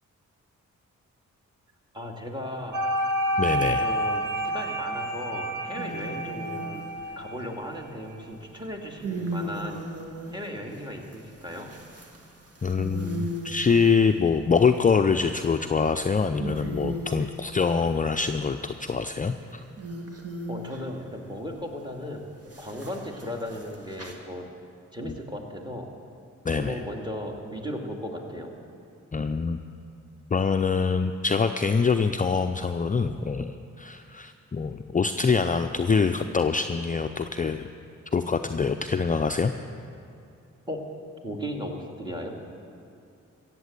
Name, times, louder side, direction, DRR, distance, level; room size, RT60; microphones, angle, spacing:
voice 1, 1.9-2.9 3.6-6.8 7.2-9.8 10.3-11.7 20.5-22.2 22.6-24.5 24.9-25.9 26.5-28.5 40.7-40.8 41.2-42.3, equal, 15° right, 1 dB, 2.4 m, -36 dB
sound 1, 2.7-7.8, equal, 70° right, 1.3 m, -29 dB
voice 2, 3.4-3.9 12.6-19.6 25.0-25.1 26.4-26.8 29.1-29.6 30.3-37.7 38.1-39.5, left 5 dB, 25° left, 7 dB, 0.5 m, -25 dB
sound 2, 5.8-7.2 8.5-14.4 15.0-15.6 16.1-16.2 16.4-17.3 18.6-21.0 22.5-24.1, right 1 dB, 50° right, 2.0 m, -37 dB
15.0 x 7.6 x 8.1 m, 2.5 s
supercardioid pair, 45°, 32 cm